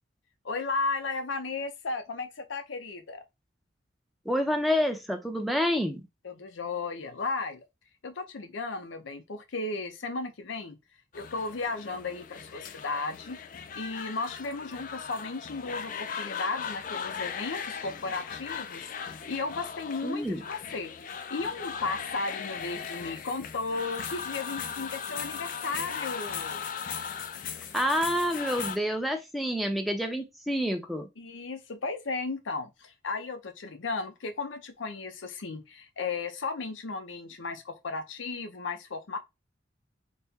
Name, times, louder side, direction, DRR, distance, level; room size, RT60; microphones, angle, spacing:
voice 1, 0.4-3.2 6.2-7.6 8.0-10.8 11.1-13.4 13.7-26.7 31.2-39.2, left 3 dB, 85° left, 0.7 m, -35 dB
voice 2, 4.3-6.0 20.0-20.4 27.7-31.1, equal, ahead, 0.6 m, -28 dB
sound 1, 11.1-28.8, left 7 dB, 45° left, 0.4 m, -38 dB
4.2 x 2.2 x 3.5 m
head